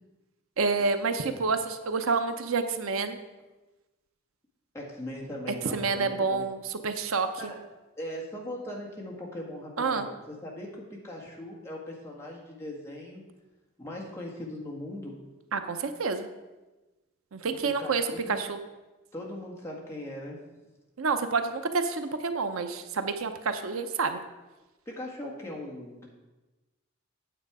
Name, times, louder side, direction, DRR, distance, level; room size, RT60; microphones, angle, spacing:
voice 1, 0.6-3.2 5.7-7.5 9.8-10.1 15.5-16.3 17.3-18.6 21.0-24.2, right 4 dB, 80° right, 8 dB, 0.7 m, -28 dB
voice 2, 4.7-6.5 7.4-7.6 8.0-13.2 13.8-15.2 17.5-18.4 19.1-20.4 24.8-26.1, left 1 dB, 15° left, -3 dB, 1.6 m, -39 dB
9.0 x 7.3 x 4.8 m, 1.1 s
head